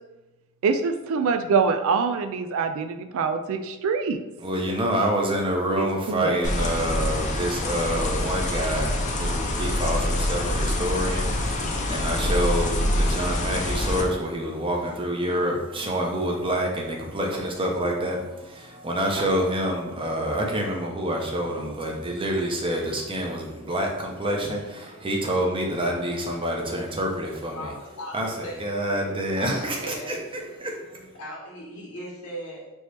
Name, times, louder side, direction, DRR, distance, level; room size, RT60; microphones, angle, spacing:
voice 1, 0.6-4.2 5.8-6.4, right 5 dB, 65° right, 8 dB, 0.3 m, -24 dB
voice 2, 4.4-27.7 28.1-31.2, right 1 dB, 25° right, 0 dB, 0.7 m, -27 dB
sound 1, 6.4-14.0, left 1 dB, 35° left, 0.5 m, -25 dB
voice 3, 27.5-28.2 28.4-28.6 29.4-30.2 31.1-32.7, equal, 70° left, -6 dB, 1.0 m, -38 dB
4.4 x 2.9 x 3.3 m, 1.0 s
head